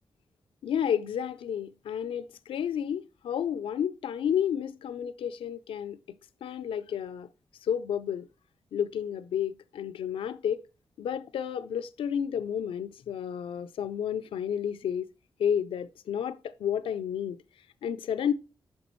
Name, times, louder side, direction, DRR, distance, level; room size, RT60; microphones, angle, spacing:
voice 1, 0.6-6.0 6.4-7.3 7.6-8.3 8.7-10.6 11.0-15.1 15.4-17.4 17.8-18.3, left 8 dB, 90° left, 0.4 m, -31 dB
9.4 x 6.0 x 3.0 m
cardioid pair, 50°, 9 cm